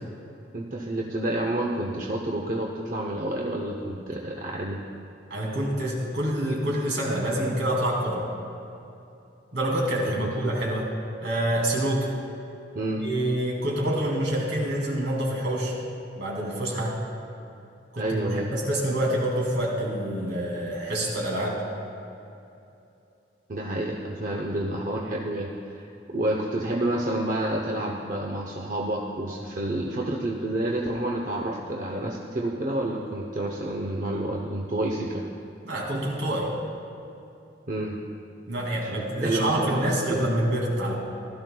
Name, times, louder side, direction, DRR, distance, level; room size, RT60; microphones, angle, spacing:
voice 1, 0.5-4.8 10.1-10.3 12.7-13.0 18.0-18.5 23.5-25.8 26.1-35.2 37.7-38.0 38.8-40.2, right 1 dB, 45° right, -1 dB, 0.7 m, -29 dB
voice 2, 5.3-8.3 9.5-10.9 11.2-12.1 13.0-15.7 16.2-17.0 17.9-21.6 35.6-36.5 38.5-40.9, right 1 dB, 70° right, -3 dB, 2.5 m, -27 dB
16.5 x 12.5 x 2.3 m, 2.8 s
head